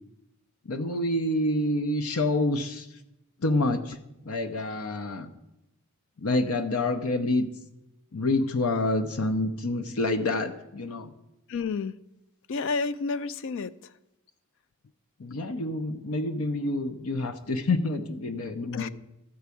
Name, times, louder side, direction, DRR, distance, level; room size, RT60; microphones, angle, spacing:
voice 1, 0.7-2.9 3.4-4.0 4.3-5.3 6.2-7.5 8.1-11.1 15.2-18.9, left 2 dB, 75° left, 0.8 m, -27 dB
voice 2, 11.5-11.9 12.5-13.9 15.3-15.4 18.7-18.9, left 4 dB, 60° left, 0.4 m, -30 dB
13.0 x 4.7 x 8.3 m
head